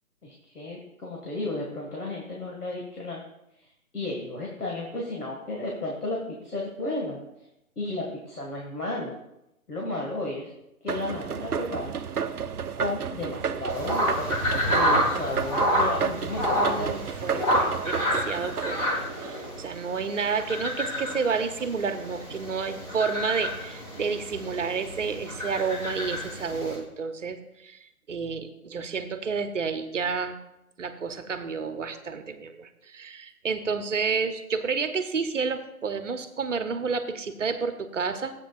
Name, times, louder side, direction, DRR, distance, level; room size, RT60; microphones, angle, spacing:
voice 1, 0.2-3.2 3.9-7.2 7.8-9.2 9.7-10.5 10.8-12.0 12.8-17.0, left 2 dB, 85° left, -2 dB, 2.1 m, -33 dB
sound 1, 10.9-20.0, right 7 dB, 85° right, 0.7 m, -32 dB
sound 2, 13.7-26.8, equal, 25° left, 2.3 m, -29 dB
voice 2, 16.5-18.8 19.2-27.8 28.1-30.4 30.8-38.3, right 5 dB, 55° right, 10 dB, 0.9 m, -30 dB
13.5 x 8.3 x 2.5 m, 0.86 s
figure-of-eight pair, 150°, 44 cm